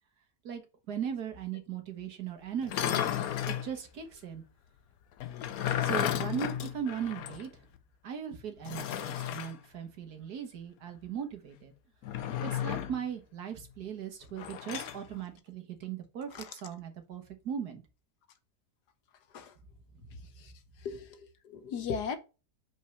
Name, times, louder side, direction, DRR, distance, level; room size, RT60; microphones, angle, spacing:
voice 1, 0.9-3.0 3.5-4.4 5.8-7.5 8.0-11.7 12.4-17.8, right 8 dB, 75° right, 1.8 m, -38 dB
sound 1, 2.6-3.7 5.2-7.5 7.8-7.9 8.6-9.5 12.0-13.0 14.4-15.0, left 10 dB, 70° left, 1.1 m, -33 dB
voice 2, 20.8-22.2, left 6 dB, 85° left, 1.5 m, -37 dB
5.5 x 4.5 x 5.6 m
omnidirectional pair, 1.7 m